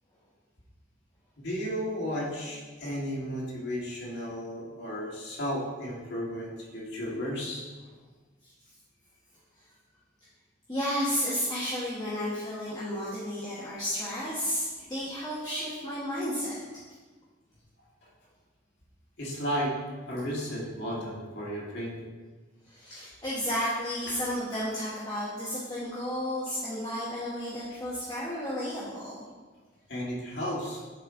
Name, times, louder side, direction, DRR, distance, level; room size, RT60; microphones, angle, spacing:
voice 1, 1.4-7.7 18.0-18.1 19.2-19.8 20.1-22.0 24.1-24.2 29.9-30.8, equal, 60° left, -4 dB, 1.8 m, -34 dB
voice 2, 10.7-16.6 22.7-29.2, equal, 20° left, -9 dB, 1.4 m, -32 dB
10.0 x 4.3 x 3.8 m, 1.4 s
head